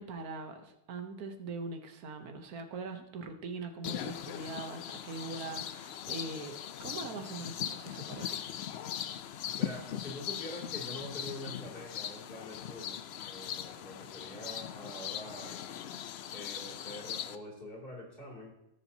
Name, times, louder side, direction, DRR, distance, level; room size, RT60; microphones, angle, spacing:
voice 1, 0.0-8.4, right 3 dB, 75° right, 6 dB, 1.4 m, -42 dB
sound 1, 3.8-17.4, left 10 dB, 80° left, 0.5 m, -40 dB
voice 2, 9.6-15.6 16.3-18.5, left 1 dB, 35° left, -3 dB, 2.7 m, -45 dB
16.5 x 7.1 x 2.8 m, 0.88 s
omnidirectional pair, 1.6 m